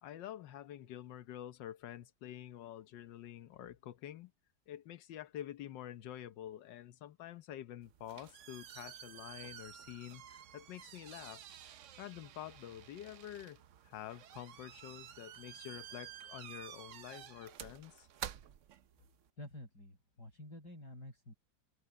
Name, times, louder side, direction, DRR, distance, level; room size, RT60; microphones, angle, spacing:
voice 1, 0.0-4.3 4.7-11.4 12.0-18.1, left 11 dB, 75° left, 1.5 m, -48 dB
sound 1, 7.8-19.3, right 10 dB, 60° right, 0.8 m, -51 dB
voice 2, 19.4-21.3, left 1 dB, 60° left, 7.9 m, -50 dB
omnidirectional pair, 2.0 m